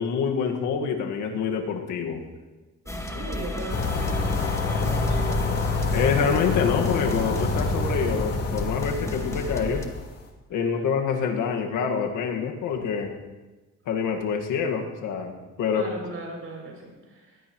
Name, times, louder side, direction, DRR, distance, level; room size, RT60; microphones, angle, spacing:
voice 1, 0.0-2.2 5.9-9.9 10.5-13.1 13.9-15.9, left 6 dB, 90° left, 2 dB, 1.8 m, -26 dB
voice 2, 2.8-5.3 15.7-17.4, right 2 dB, 45° right, -1 dB, 6.6 m, -38 dB
sound 1, 2.9-9.9, left 1 dB, 10° left, 1.6 m, -34 dB
sound 2, 3.7-10.1, left 3 dB, 55° left, 2.8 m, -27 dB
20.5 x 16.0 x 3.1 m, 1.2 s
cardioid pair, 90°, 30 cm